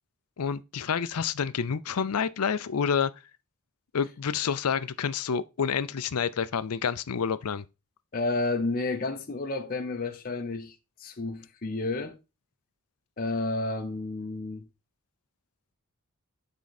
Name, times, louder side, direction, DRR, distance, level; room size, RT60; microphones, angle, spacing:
voice 1, 0.4-3.1 3.9-7.7, left 6 dB, 85° left, 0.5 m, -28 dB
voice 2, 8.1-12.2 13.2-14.7, left 2 dB, 40° left, 0.8 m, -31 dB
9.3 x 3.8 x 4.1 m
head